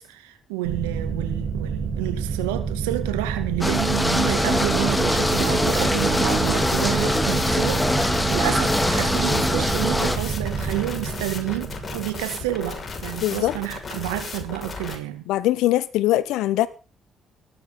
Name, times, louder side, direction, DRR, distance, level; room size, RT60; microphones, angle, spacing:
voice 1, 0.0-7.9 8.3-15.2, right 15 dB, 90° right, 2.3 m, -29 dB
sound 1, 0.6-13.9, right 6 dB, 65° right, 3.7 m, -29 dB
sound 2, 3.6-10.2, left 1 dB, 10° left, 2.5 m, -23 dB
sound 3, 5.2-15.0, left 4 dB, 45° left, 6.1 m, -35 dB
voice 2, 13.2-13.5 15.3-16.7, left 15 dB, 75° left, 1.3 m, -21 dB
18.0 x 13.5 x 4.0 m
hypercardioid pair, 50°, 0 cm